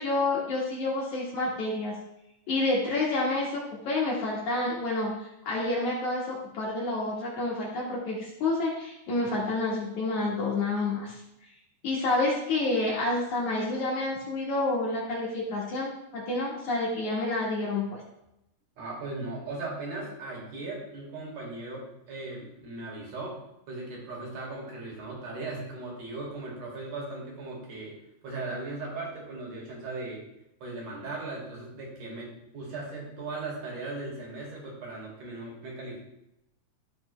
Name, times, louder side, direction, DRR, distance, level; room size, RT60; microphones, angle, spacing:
voice 1, 0.0-1.9 2.5-3.6 3.9-11.2 11.8-17.8, left 2 dB, 60° left, -5 dB, 2.4 m, -29 dB
voice 2, 18.8-23.4 23.7-28.0 28.2-30.2 30.6-36.0, right 2 dB, 45° right, -3 dB, 3.2 m, -38 dB
12.5 x 5.7 x 3.2 m, 0.85 s
omnidirectional pair, 4.6 m